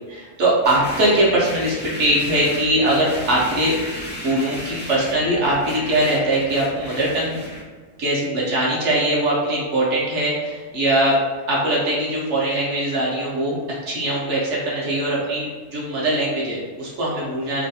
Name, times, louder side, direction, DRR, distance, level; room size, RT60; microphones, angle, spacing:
voice 1, 0.1-7.4 8.0-11.2 11.5-13.6 13.9-17.7, right 1 dB, 65° right, -5 dB, 1.1 m, -21 dB
sound 1, 0.6-7.6, equal, 15° left, 0.3 m, -34 dB
3.2 x 2.2 x 2.7 m, 1.4 s
omnidirectional pair, 1.4 m